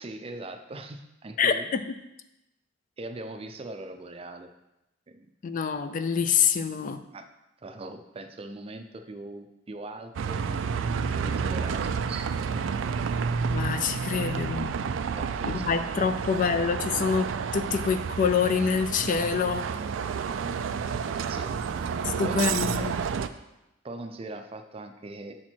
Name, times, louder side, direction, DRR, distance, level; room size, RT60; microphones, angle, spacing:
voice 1, 0.0-1.7 3.0-4.5 5.1-5.3 7.1-7.3 7.6-12.3 13.9-14.2 15.1-15.7 16.0-16.2 21.3-21.6 22.0-22.4 23.8-25.3, right 2 dB, 30° right, 7 dB, 0.5 m, -41 dB
voice 2, 1.4-1.8 5.4-7.0 13.5-14.7 15.5-19.7 22.2-23.0, left 6 dB, 45° left, 10 dB, 0.3 m, -26 dB
Bus, 10.1-23.3, right 6 dB, 90° right, 0.4 m, -30 dB
7.3 x 4.4 x 4.3 m, 0.91 s
head